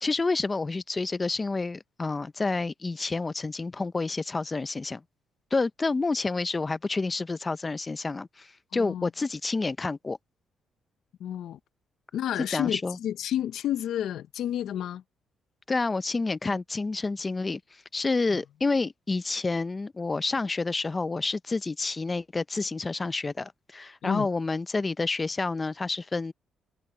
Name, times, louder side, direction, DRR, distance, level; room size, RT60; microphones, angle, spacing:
voice 1, 0.0-5.0 5.5-8.5 8.7-10.2 12.5-13.0 15.7-17.6 17.9-26.3, left 3 dB, 25° left, 0.6 m, -29 dB
voice 2, 8.7-9.1 11.2-11.6 12.1-15.0 24.0-24.3, left 11 dB, 75° left, 0.6 m, -30 dB
cardioid pair, 90°, 0 cm